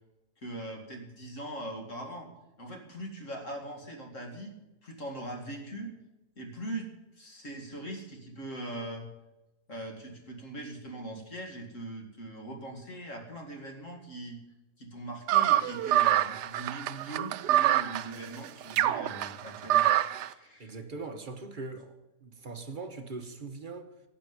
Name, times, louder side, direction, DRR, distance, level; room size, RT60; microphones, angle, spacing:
voice 1, 0.4-2.3 2.6-4.5 4.8-5.9 6.4-6.9 7.2-9.1 9.7-14.4 14.8-19.9 20.2-20.8, right 1 dB, 50° left, 3 dB, 2.4 m, -41 dB
sound 1, 15.3-20.3, right 13 dB, 80° right, 1.2 m, -26 dB
voice 2, 20.6-24.0, right 3 dB, 35° right, 7 dB, 1.0 m, -41 dB
11.5 x 7.7 x 9.4 m, 1.0 s
omnidirectional pair, 1.8 m